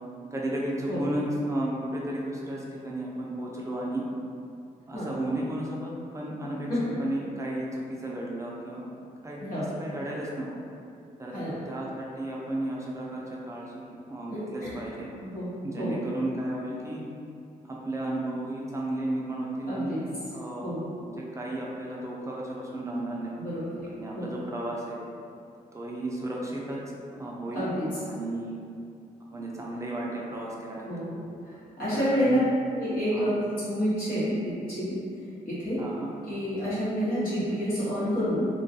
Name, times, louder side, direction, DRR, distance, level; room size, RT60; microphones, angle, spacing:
voice 1, 0.3-4.0 4.9-6.7 7.0-8.8 9.2-10.4 11.2-11.3 11.7-15.1 15.6-17.0 17.6-20.0 20.3-20.7 21.0-23.3 24.0-25.0 25.7-26.8 27.2-27.7 28.0-28.5 29.3-30.9 31.9-32.4 33.1-33.3 35.8-36.1, right 1 dB, 20° right, -4 dB, 0.4 m, -33 dB
voice 2, 9.4-9.7 11.3-11.5 14.3-14.7 15.2-16.0 19.7-20.0 20.6-20.9 23.4-23.9 24.1-24.3 27.5-27.9 30.9-32.4 32.7-33.3 33.6-35.0 35.4-35.8 36.3-38.5, equal, 85° left, -11 dB, 1.1 m, -29 dB
2.3 x 2.2 x 2.6 m, 2.5 s
cardioid pair, 100°, 15 cm